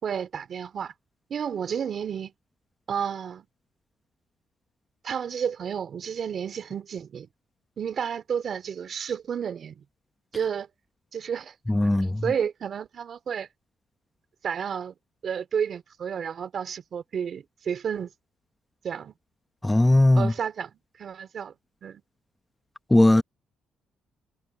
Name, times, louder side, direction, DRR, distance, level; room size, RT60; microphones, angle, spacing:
voice 1, 0.0-0.9 1.3-2.3 2.9-3.5 5.0-7.3 7.8-9.8 10.3-10.7 11.1-11.5 12.2-13.5 14.4-14.9 15.2-18.1 18.8-19.1 20.1-21.5 21.8-22.0, right 7 dB, 55° right, 2.9 m, -31 dB
voice 2, 11.7-12.2 19.6-20.3 22.9-23.2, left 1 dB, 10° left, 1.1 m, -18 dB
cardioid pair, 90°, 0 cm